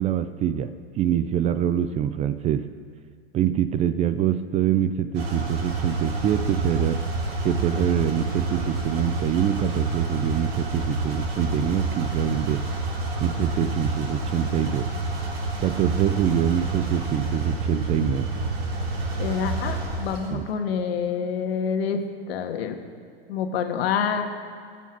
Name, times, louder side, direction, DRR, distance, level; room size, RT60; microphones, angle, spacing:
voice 1, 0.0-2.6 3.3-7.0 7.4-12.6 13.2-14.9 15.6-18.3 20.3-20.4, right 10 dB, 20° right, 12 dB, 0.4 m, -25 dB
sound 1, 5.1-20.3, right 2 dB, 65° right, 3.5 m, -28 dB
voice 2, 19.2-22.0 22.3-22.8 23.3-24.2, left 7 dB, 70° left, 5 dB, 1.7 m, -27 dB
20.0 x 7.3 x 6.0 m, 2.3 s
hypercardioid pair, 125°, 31 cm